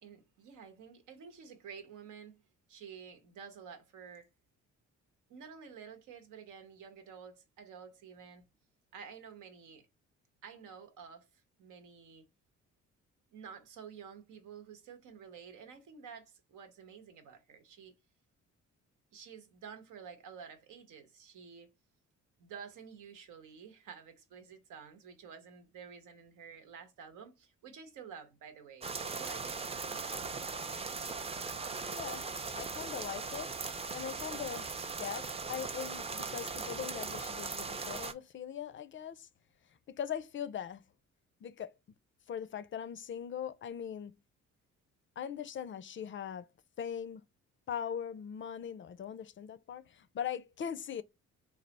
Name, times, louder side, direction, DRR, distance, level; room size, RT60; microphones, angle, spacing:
voice 1, 0.0-2.4 2.7-4.3 5.3-8.4 8.9-9.9 10.4-12.3 13.3-17.9 19.1-21.7 22.4-29.6, right 6 dB, 90° right, 1.0 m, -51 dB
sound 1, 28.8-38.1, right 4 dB, 20° right, 0.5 m, -39 dB
voice 2, 31.9-32.3 32.5-33.5 33.9-34.7 35.0-39.3 39.9-40.8 41.4-41.7 42.3-44.2 45.2-46.5 46.8-47.2 47.7-51.0, left 8 dB, 40° left, 0.4 m, -40 dB
3.3 x 2.4 x 4.0 m
cardioid pair, 90°, 30 cm